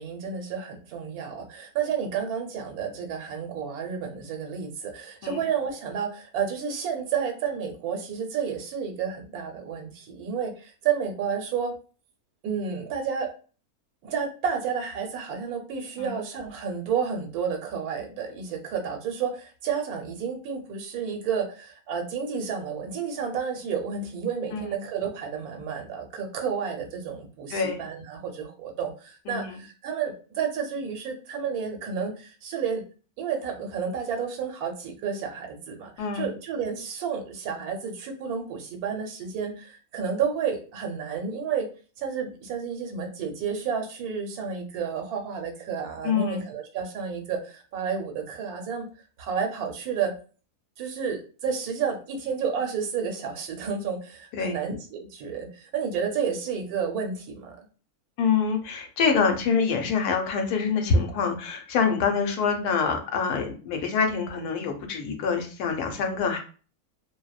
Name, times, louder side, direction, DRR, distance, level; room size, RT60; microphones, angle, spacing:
voice 1, 0.0-11.7 12.4-13.3 14.0-32.8 33.2-41.7 42.0-48.9 49.2-50.1 50.8-57.6, right 6 dB, 85° right, 3 dB, 1.1 m, -31 dB
voice 2, 29.3-29.6 36.0-36.3 46.0-46.4 54.3-54.6 58.2-66.4, left 5 dB, 85° left, 4 dB, 1.1 m, -25 dB
2.6 x 2.0 x 2.3 m, 0.37 s
omnidirectional pair, 1.6 m